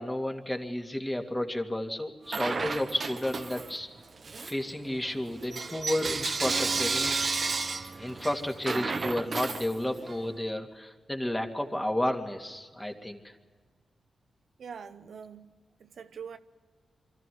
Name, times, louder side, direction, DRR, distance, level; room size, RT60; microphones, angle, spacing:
voice 1, 0.0-3.9 4.4-7.2 7.9-13.3, left 1 dB, 15° left, 2.9 m, -32 dB
Bell / Coin (dropping), 2.3-3.8 4.2-10.2, right 4 dB, 55° right, 1.4 m, -32 dB
Acoustic guitar, 6.4-10.0, right 3 dB, 40° right, 1.2 m, -43 dB
voice 2, 14.6-16.4, right 6 dB, 75° right, 0.9 m, -44 dB
24.5 x 14.0 x 9.6 m
cardioid pair, 50°, 0 cm